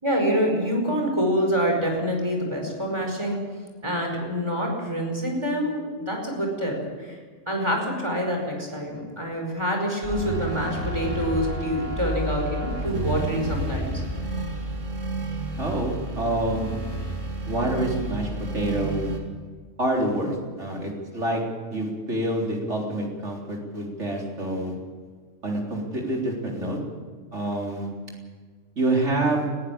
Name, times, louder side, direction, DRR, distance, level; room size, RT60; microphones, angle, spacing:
voice 1, 0.0-3.4 3.8-7.2 7.5-14.0, equal, 20° right, 1 dB, 5.1 m, -26 dB
sound 1, 10.0-19.2, right 2 dB, 90° right, 3.0 m, -30 dB
voice 2, 15.6-16.7 17.5-19.1 19.8-21.4 21.7-24.7 25.4-26.8 27.3-27.9 28.8-29.5, right 1 dB, 70° right, -1 dB, 4.2 m, -27 dB
20.5 x 15.0 x 8.7 m, 1.5 s
omnidirectional pair, 1.3 m